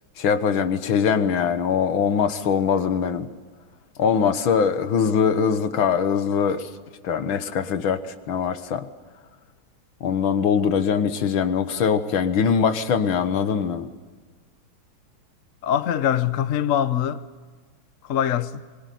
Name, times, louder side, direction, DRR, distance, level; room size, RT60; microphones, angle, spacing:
voice 1, 0.2-3.3 4.0-6.7 7.0-8.0 8.3-8.9 10.0-13.9, left 7 dB, 75° left, 2.1 m, -22 dB
voice 2, 15.6-17.2 18.1-18.5, left 10 dB, 55° left, 1.0 m, -22 dB
25.5 x 22.0 x 9.3 m
omnidirectional pair, 2.2 m